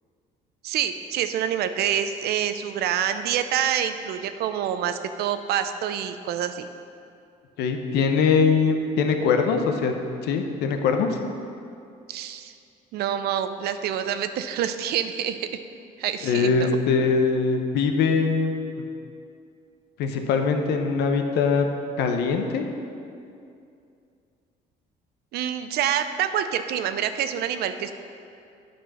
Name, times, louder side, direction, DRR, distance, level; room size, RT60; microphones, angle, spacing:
voice 1, 0.6-6.7 12.1-12.5 12.9-15.5 16.0-16.7 25.3-27.9, right 9 dB, 70° right, 10 dB, 0.5 m, -27 dB
voice 2, 7.6-9.9 10.2-11.2 16.2-18.9 20.0-21.7 22.0-22.6, left 5 dB, 80° left, 5 dB, 0.8 m, -22 dB
9.1 x 4.4 x 6.0 m, 2.5 s
cardioid pair, 110°, 17 cm